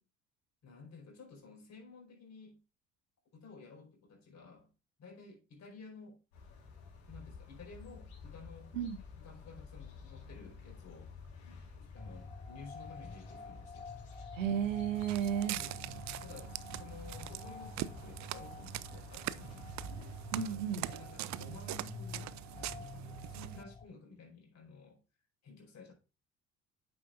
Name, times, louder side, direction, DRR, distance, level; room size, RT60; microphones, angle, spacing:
voice 1, 0.6-2.6 3.3-4.7 5.0-6.2 7.1-8.7 9.2-11.1 11.4-13.9 15.5-15.8 16.2-19.7 20.4-25.0 25.4-25.9, left 4 dB, 45° left, 4.6 m, -53 dB
sound 1, 6.3-20.4, left 5 dB, 75° left, 4.3 m, -52 dB
sound 2, 12.0-23.8, left 4 dB, 15° left, 0.8 m, -49 dB
voice 2, 14.3-15.6 20.3-20.9, right 9 dB, 90° right, 0.8 m, -33 dB
Walk footsteps, 15.0-23.6, right 16 dB, 50° right, 0.5 m, -43 dB
8.7 x 7.8 x 2.6 m
hypercardioid pair, 55°, 37 cm